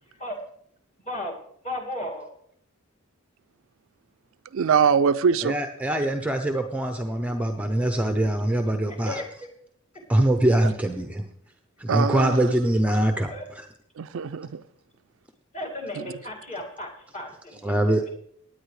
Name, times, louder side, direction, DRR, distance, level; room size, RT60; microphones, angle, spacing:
voice 1, 1.6-2.3 9.0-9.3 13.3-13.5 15.5-17.8, left 1 dB, 35° left, 2.3 m, -34 dB
voice 2, 4.5-5.6 10.6-10.7 11.9-12.5 14.0-14.6 16.0-16.1, right 6 dB, 65° right, 0.4 m, -23 dB
voice 3, 5.4-9.2 10.1-11.3 11.8-13.6 17.6-18.1, right 1 dB, 5° right, 0.6 m, -23 dB
16.5 x 9.7 x 3.3 m
head